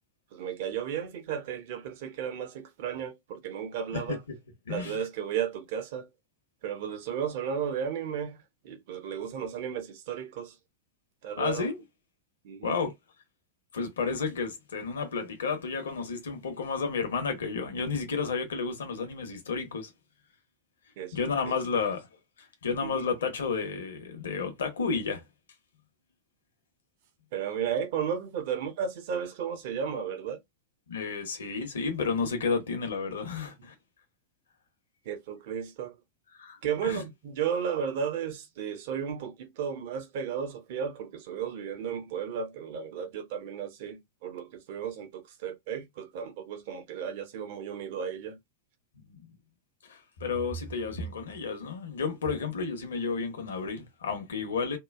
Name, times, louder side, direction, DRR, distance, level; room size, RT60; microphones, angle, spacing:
voice 1, 0.3-4.2 4.7-6.1 6.6-10.6 11.2-11.7 12.4-12.8 21.0-21.2 21.5-21.6 22.8-23.1 27.3-30.4 35.1-35.9 36.6-48.4, right 8 dB, 50° right, 0.6 m, -34 dB
voice 2, 4.7-5.0 11.4-11.8 12.6-12.9 13.7-19.9 21.1-22.1 22.4-25.2 30.9-33.7 36.3-37.0 49.0-49.3 49.8-54.8, left 5 dB, 65° left, 0.8 m, -32 dB
2.9 x 2.2 x 2.3 m
figure-of-eight pair, 90°, 0 cm